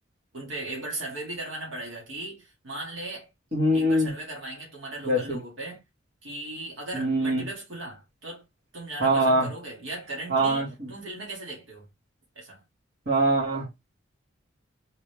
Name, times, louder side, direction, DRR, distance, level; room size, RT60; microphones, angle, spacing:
voice 1, 0.3-3.3 3.7-5.8 6.2-8.4 8.7-11.9 12.4-12.6, right 2 dB, 90° right, 2.2 m, -37 dB
voice 2, 3.5-4.1 5.0-5.4 6.9-7.5 9.0-9.5 10.3-10.7 13.1-13.7, right 1 dB, 60° right, 2.3 m, -23 dB
4.0 x 3.2 x 3.4 m
head